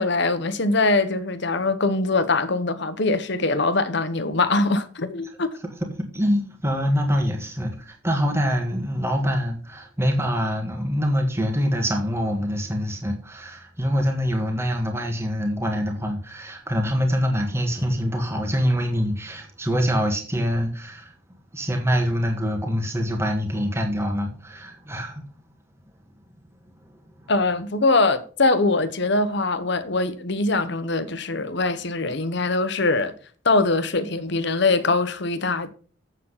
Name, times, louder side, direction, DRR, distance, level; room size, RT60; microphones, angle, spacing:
voice 1, 0.0-5.6 27.3-33.1 33.4-35.7, left 3 dB, 60° left, 1.1 m, -22 dB
voice 2, 5.8-21.1 21.5-25.2 27.2-27.3, equal, 10° right, 1.7 m, -25 dB
8.2 x 7.3 x 5.7 m
head